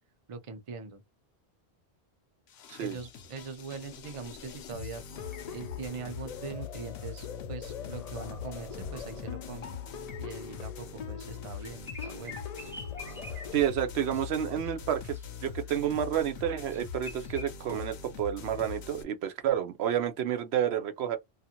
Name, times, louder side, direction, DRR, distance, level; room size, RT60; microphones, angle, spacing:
voice 1, 0.3-1.0 2.8-5.0 5.5-9.7 10.2-12.4, right 4 dB, 40° right, 0.6 m, -42 dB
sound 1, 2.5-19.0, left 7 dB, 85° left, 0.9 m, -42 dB
sound 2, 5.1-13.7, left 7 dB, 55° left, 0.4 m, -44 dB
sound 3, 11.6-14.3 14.6-15.9 16.1-17.5, left 1 dB, 5° right, 0.8 m, -47 dB
voice 2, 13.5-15.2 15.4-21.2, right 10 dB, 80° right, 0.8 m, -30 dB
2.5 x 2.4 x 2.8 m
omnidirectional pair, 1.1 m